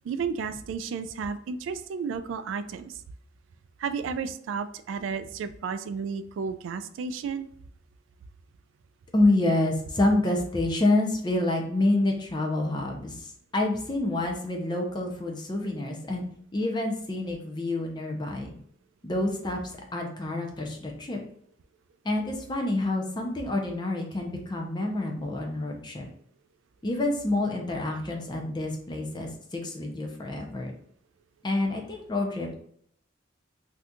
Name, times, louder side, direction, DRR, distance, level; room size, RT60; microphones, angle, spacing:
voice 1, 0.0-3.0 3.8-7.5, right 5 dB, 80° right, 11 dB, 0.3 m, -32 dB
voice 2, 9.1-16.2 16.5-18.5 19.0-19.6 19.9-21.2 22.0-26.0 26.8-30.7 31.4-32.5, left 2 dB, 25° left, 1 dB, 0.5 m, -28 dB
2.7 x 2.4 x 3.5 m, 0.66 s
head